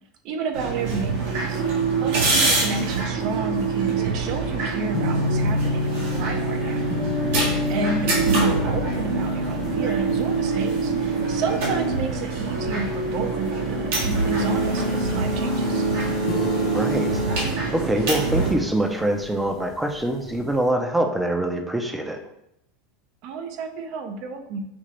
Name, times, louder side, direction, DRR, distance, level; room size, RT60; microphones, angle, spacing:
voice 1, 0.2-1.6 2.0-6.8 7.5-15.8 23.2-24.6, right 4 dB, 55° right, 6 dB, 0.6 m, -31 dB
sound 1, 0.5-18.5, right 3 dB, 75° right, 1.6 m, -24 dB
sound 2, 4.9-20.6, left 4 dB, 40° left, 0.5 m, -31 dB
voice 2, 16.6-22.2, right 1 dB, 5° right, 5 dB, 0.6 m, -25 dB
5.2 x 2.8 x 3.2 m, 0.79 s
supercardioid pair, 120°, 0 cm